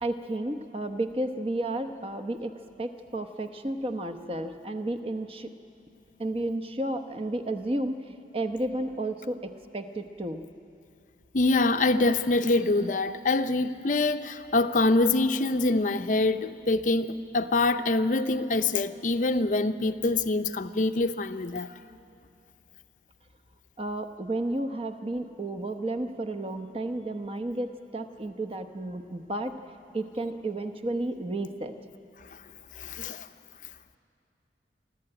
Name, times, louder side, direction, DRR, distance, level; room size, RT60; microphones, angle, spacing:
voice 1, 0.0-5.5 6.2-8.0 8.3-10.4 23.8-29.5 29.9-31.8, right 1 dB, 30° right, 8 dB, 0.9 m, -32 dB
voice 2, 11.3-21.7 32.8-33.3, left 2 dB, 45° left, 10 dB, 0.6 m, -25 dB
27.5 x 12.0 x 8.9 m, 2.7 s
head